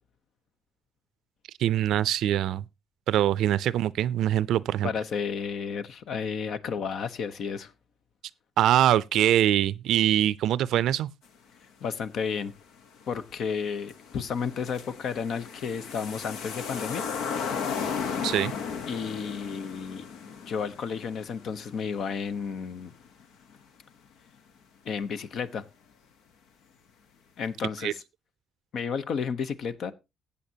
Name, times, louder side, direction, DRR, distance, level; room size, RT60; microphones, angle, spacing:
voice 1, 1.6-2.6 3.1-4.9 8.6-11.1 18.2-18.5 27.8-27.9, right 12 dB, 80° right, 0.4 m, -23 dB
voice 2, 4.8-7.7 11.8-12.5 13.1-17.1 18.9-20.1 20.5-22.9 24.8-25.6 27.4-28.0 28.7-29.9, left 6 dB, 65° left, 0.9 m, -32 dB
sound 1, 13.0-13.1 13.5-23.2 23.5-23.6, left 6 dB, 90° left, 1.1 m, -35 dB
15.5 x 8.5 x 2.8 m
cardioid pair, 90°, 0 cm